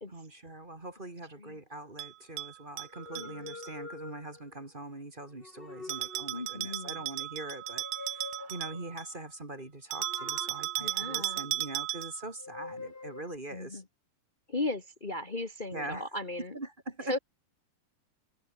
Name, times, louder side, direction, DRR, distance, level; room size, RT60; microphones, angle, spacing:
voice 1, 0.1-13.8 15.7-16.1 16.5-17.2, right 2 dB, 15° right, 2.0 m, -43 dB
Bell, 2.0-3.7 5.9-9.1 9.9-12.3, right 16 dB, 80° right, 2.4 m, -36 dB
sound 1, 2.8-4.6 5.3-6.6 7.5-8.9 10.0-11.8 12.4-13.4, left 3 dB, 20° left, 1.8 m, -46 dB
voice 2, 3.2-3.5 6.3-7.0 8.4-8.5 10.8-11.4 13.5-13.8 14.5-16.5 17.1-17.2, left 2 dB, 50° left, 0.5 m, -37 dB
omnidirectional pair, 4.0 m